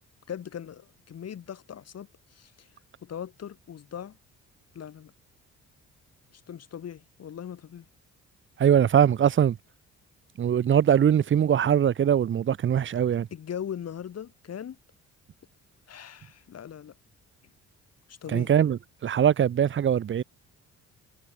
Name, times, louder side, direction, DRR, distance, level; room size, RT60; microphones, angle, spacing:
voice 1, 0.3-2.7 3.0-4.2 4.7-5.1 6.3-7.9 13.3-14.8 15.9-17.0 18.1-18.5, left 9 dB, 55° left, 3.5 m, -39 dB
voice 2, 8.6-9.6 10.4-13.3 18.3-20.2, right 9 dB, 40° right, 0.7 m, -22 dB
cardioid pair, 90°, 30 cm